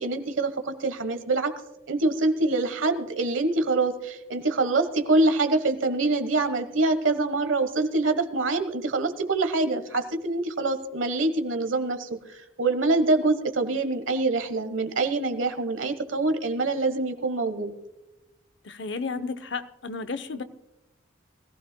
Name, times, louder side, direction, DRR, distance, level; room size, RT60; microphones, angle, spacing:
voice 1, 0.0-1.5 1.9-17.7, right 2 dB, 85° right, 9 dB, 1.2 m, -25 dB
voice 2, 18.6-20.4, left 4 dB, 65° left, 11 dB, 0.7 m, -33 dB
21.0 x 15.5 x 2.2 m, 0.97 s
head